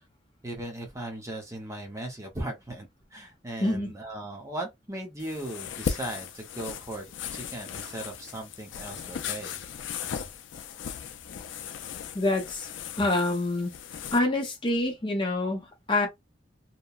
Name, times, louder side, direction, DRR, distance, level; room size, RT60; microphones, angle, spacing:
voice 1, 0.4-7.1 7.3-9.6, right 1 dB, 15° right, 0.6 m, -38 dB
voice 2, 3.6-3.9 12.1-12.7 13.0-13.7 14.1-16.1, left 2 dB, 25° left, 0.7 m, -26 dB
sound 1, 5.2-14.2, left 7 dB, 85° left, 0.4 m, -37 dB
2.8 x 2.1 x 2.3 m
head